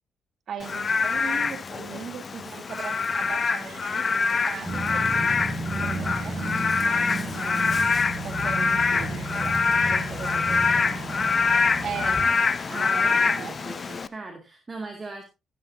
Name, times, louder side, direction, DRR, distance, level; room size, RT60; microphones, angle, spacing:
voice 1, 0.5-6.4 6.8-7.7 8.2-10.6 11.8-12.2 12.7-13.6, right 7 dB, 60° right, 2.1 m, -38 dB
Frog / Rain, 0.6-14.1, left 5 dB, 40° left, 0.8 m, -25 dB
Yell / Screaming, 3.6-11.9, right 8 dB, 80° right, 3.1 m, -49 dB
Growling, 4.6-12.3, right 2 dB, ahead, 5.8 m, -33 dB
voice 2, 10.0-11.2 12.7-15.2, right 3 dB, 30° right, 2.3 m, -40 dB
15.5 x 9.6 x 2.7 m
cardioid pair, 90°, 0 cm